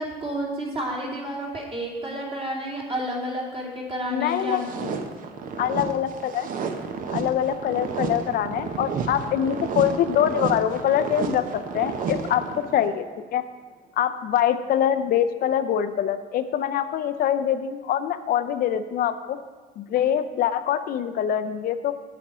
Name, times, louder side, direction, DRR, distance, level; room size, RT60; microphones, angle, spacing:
voice 1, 0.0-4.6, equal, 35° right, -3 dB, 2.7 m, -30 dB
voice 2, 4.1-4.9 5.6-6.5 7.1-12.4 12.7-13.0 13.3-13.4 14.0-19.4 19.8-21.9, left 10 dB, 60° left, 11 dB, 0.5 m, -24 dB
sound 1, 4.3-12.9, right 5 dB, 55° right, 0.9 m, -31 dB
8.5 x 7.7 x 4.8 m, 1.4 s
cardioid pair, 110°, 17 cm